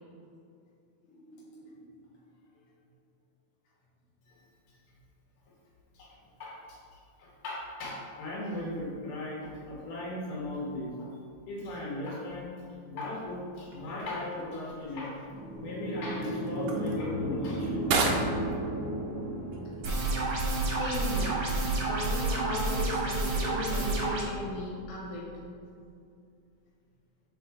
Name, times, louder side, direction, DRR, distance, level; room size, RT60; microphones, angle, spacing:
voice 1, 1.1-1.9 20.7-21.5 21.9-25.2, left 1 dB, 90° left, -5 dB, 2.4 m, -37 dB
voice 2, 5.9-11.1 11.5-12.5 12.9-15.2 15.6-17.8, left 1 dB, 70° left, -5 dB, 2.7 m, -38 dB
sound 1, 13.6-22.7, right 3 dB, 85° right, 1.3 m, -37 dB
sound 2, 15.3-20.2, right 1 dB, 40° left, 1.6 m, -34 dB
sound 3, 19.8-24.2, right 2 dB, 60° right, 1.4 m, -29 dB
7.2 x 3.9 x 3.6 m, 2.4 s
omnidirectional pair, 3.4 m